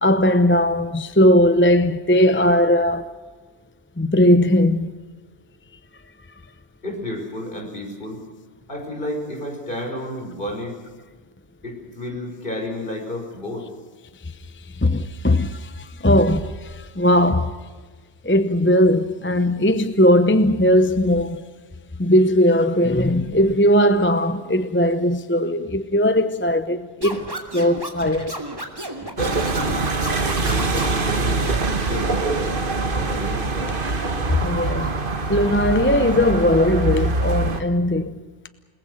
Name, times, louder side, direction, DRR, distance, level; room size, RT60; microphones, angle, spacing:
voice 1, 0.0-3.1 4.0-4.9 14.8-17.5 18.2-21.4 22.0-28.3 34.3-34.9 35.3-38.2, left 1 dB, 10° left, 0.8 m, -18 dB
voice 2, 6.8-8.2 8.7-10.8 11.6-13.7 29.0-29.9 30.2-31.5 31.9-33.8, left 1 dB, 55° left, 5.9 m, -31 dB
Scratching (performance technique), 27.0-31.0 31.4-32.0, right 1 dB, 20° right, 2.8 m, -33 dB
sound 1, 29.2-37.6, right 3 dB, 55° right, 1.8 m, -24 dB
29.5 x 19.5 x 6.5 m
omnidirectional pair, 1.1 m